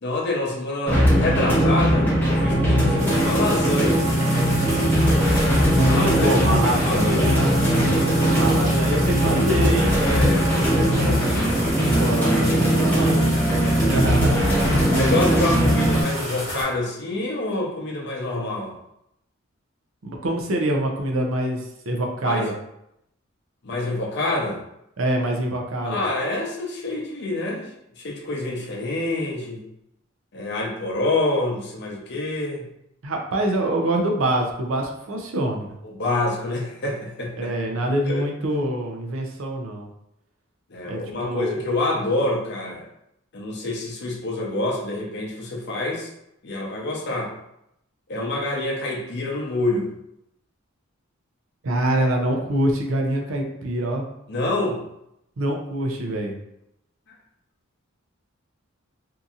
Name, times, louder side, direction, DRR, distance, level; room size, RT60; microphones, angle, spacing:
voice 1, 0.0-4.1 5.7-7.4 10.0-11.5 13.5-14.0 14.9-18.7 22.2-22.5 23.6-24.6 25.8-27.7 28.0-29.6 30.3-32.7 35.8-37.5 38.1-38.2 40.7-42.9 43.3-46.1 46.4-47.3 48.1-49.9 54.3-54.8, left 2 dB, 55° left, -2 dB, 0.6 m, -27 dB
sound 1, 0.9-16.0, equal, 10° left, 0.7 m, -19 dB
sound 2, 3.0-16.6, equal, 15° right, 1.0 m, -32 dB
voice 2, 5.9-7.5 8.3-10.0 10.5-10.7 11.9-13.5 13.9-14.4 20.0-21.6 21.9-22.5 25.0-26.0 33.0-35.7 37.4-39.9 40.9-41.6 51.6-54.0 55.4-56.3, right 1 dB, 75° right, 2 dB, 0.5 m, -25 dB
2.7 x 2.6 x 2.4 m, 0.80 s
head